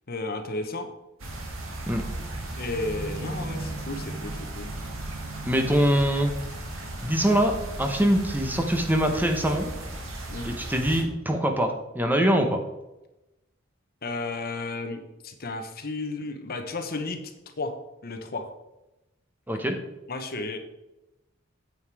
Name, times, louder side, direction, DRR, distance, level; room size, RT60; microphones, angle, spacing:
voice 1, 0.1-0.9 2.5-4.7 10.3-10.5 14.0-17.2 17.6-17.7 18.0-18.5 20.1-20.6, left 2 dB, 45° left, 6 dB, 1.0 m, -33 dB
sound 1, 1.2-11.0, right 1 dB, 75° right, 2.0 m, -35 dB
voice 2, 5.5-6.3 7.0-9.7 10.4-12.6 19.5-19.8, equal, 10° right, 4 dB, 0.9 m, -23 dB
9.0 x 7.0 x 4.8 m, 0.96 s
head